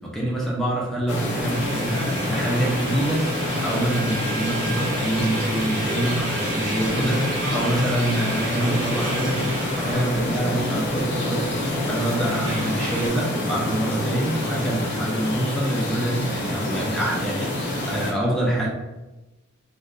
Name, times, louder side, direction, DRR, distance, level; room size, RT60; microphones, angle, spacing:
voice 1, 0.0-11.5 11.9-18.7, right 1 dB, ahead, -4 dB, 0.4 m, -26 dB
sound 1, 1.1-18.1, left 1 dB, 55° left, 0.6 m, -27 dB
sound 2, 1.4-13.1, right 2 dB, 60° right, 0.8 m, -33 dB
2.6 x 2.1 x 2.3 m, 1.0 s
head